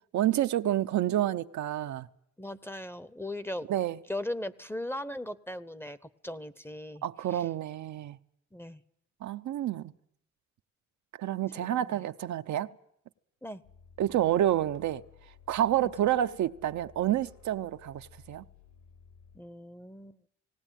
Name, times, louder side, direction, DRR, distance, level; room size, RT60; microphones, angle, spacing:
voice 1, 0.1-2.1 3.7-4.0 7.0-8.2 9.2-9.9 11.2-12.7 14.0-15.0 15.5-18.4, right 12 dB, 70° right, 0.7 m, -29 dB
voice 2, 2.4-3.7 4.1-6.0 6.2-7.0 7.3-7.5 8.5-8.8 11.5-12.0 13.4-13.6 19.3-20.2, left 1 dB, 10° left, 0.8 m, -38 dB
sound 1, 13.6-19.4, left 6 dB, 75° left, 3.9 m, -56 dB
18.5 x 18.0 x 9.0 m
cardioid pair, 90°, 30 cm